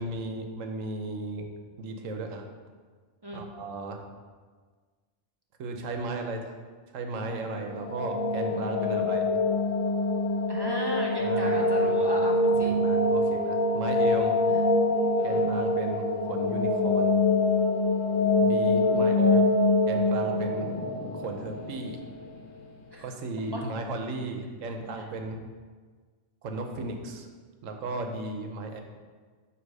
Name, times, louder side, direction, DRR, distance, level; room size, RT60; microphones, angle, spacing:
voice 1, 0.0-1.5 1.8-2.4 3.3-4.0 5.6-6.6 6.9-9.2 11.2-12.1 12.6-14.4 15.2-17.2 18.4-19.4 19.8-20.7 21.1-22.0 23.0-25.4 26.4-27.3 27.6-28.8, right 2 dB, 80° right, 4 dB, 1.1 m, -35 dB
sound 1, 7.5-22.5, left 2 dB, 85° left, 1.1 m, -25 dB
voice 2, 8.8-9.1 10.5-12.7 14.5-14.6 15.2-15.5 18.8-19.3 22.9-23.0 23.5-23.6, equal, 30° right, -1 dB, 0.5 m, -36 dB
8.0 x 2.9 x 5.3 m, 1.5 s
omnidirectional pair, 1.3 m